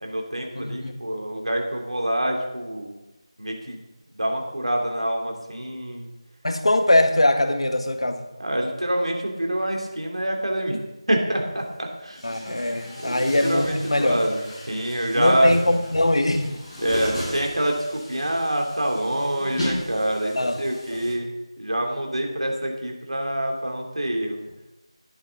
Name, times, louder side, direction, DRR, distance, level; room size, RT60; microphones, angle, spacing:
voice 1, 0.0-3.0 3.4-3.8 4.1-6.1 8.4-10.8 11.1-12.2 13.0-15.5 16.8-24.5, right 1 dB, 80° right, 1 dB, 3.1 m, -26 dB
voice 2, 0.5-1.0 6.4-8.3 12.2-14.2 15.1-16.6 20.4-20.6 20.9-21.0, left 1 dB, 75° left, 7 dB, 1.6 m, -22 dB
Chatter / Gurgling / Tap, 12.0-21.1, equal, 10° left, 5.0 m, -35 dB
13.5 x 10.5 x 3.9 m, 1.0 s
figure-of-eight pair, 170°, 3 cm